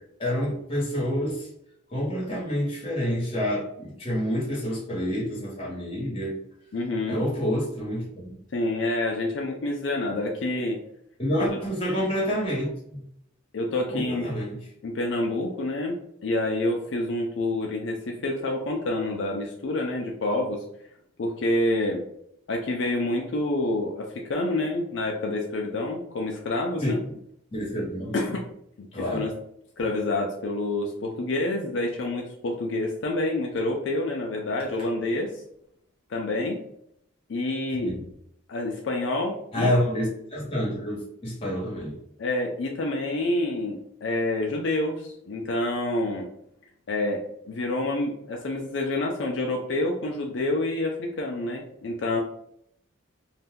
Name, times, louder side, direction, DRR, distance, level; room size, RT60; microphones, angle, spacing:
voice 1, 0.2-1.5 1.9-6.4 7.1-8.4 11.2-12.7 13.9-14.6 26.8-27.1 27.5-28.1 28.9-29.3 37.8-38.0 39.5-42.0, equal, 30° left, -5 dB, 1.1 m, -28 dB
voice 2, 6.7-7.2 8.5-10.8 11.4-11.5 13.5-14.3 14.8-20.6 21.2-22.0 22.5-27.0 28.1-28.4 28.8-29.3 29.8-35.3 36.1-36.6 37.3-38.0 38.5-39.7 42.2-46.3 46.9-52.2, left 2 dB, 70° left, 0 dB, 0.5 m, -28 dB
2.7 x 2.2 x 3.5 m, 0.72 s
head